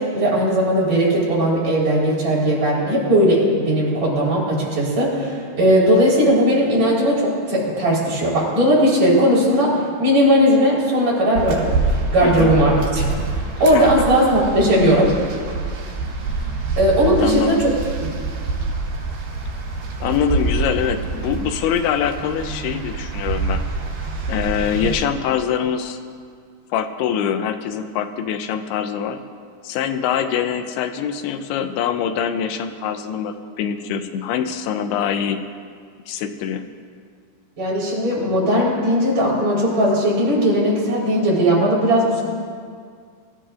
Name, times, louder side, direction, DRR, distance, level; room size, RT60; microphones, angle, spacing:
voice 1, 0.0-11.7 12.1-13.0 13.6-15.1 16.8-17.7 18.0-18.1 37.6-42.2, equal, 45° right, -6 dB, 5.3 m, -18 dB
sound 1, 11.4-25.0, right 3 dB, 75° right, 4.1 m, -26 dB
voice 2, 12.2-12.5 13.7-13.9 17.2-17.6 20.0-23.6 24.3-26.0 26.7-29.2 29.6-35.4 36.1-36.6, left 8 dB, 85° left, 8 dB, 2.7 m, -24 dB
24.0 x 14.0 x 2.5 m, 2.1 s
omnidirectional pair, 4.5 m